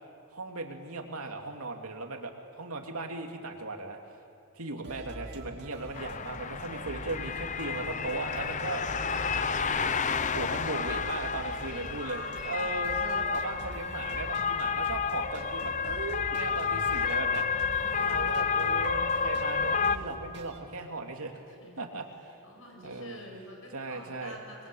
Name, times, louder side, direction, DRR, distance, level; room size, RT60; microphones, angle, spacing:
voice 1, 0.3-4.0 4.5-8.8 9.8-17.5 18.0-22.1 22.8-23.2 23.7-24.4, right 3 dB, 75° right, 3 dB, 2.8 m, -37 dB
sound 1, 4.8-20.6, right 1 dB, 50° right, 2.4 m, -45 dB
voice 2, 4.9-5.6 11.4-12.7 17.5-18.3 21.5-21.8 22.4-24.7, equal, 65° left, 0 dB, 7.6 m, -49 dB
sound 2, 5.9-20.0, left 6 dB, 35° left, 0.7 m, -30 dB
26.5 x 22.0 x 8.6 m, 2.5 s
head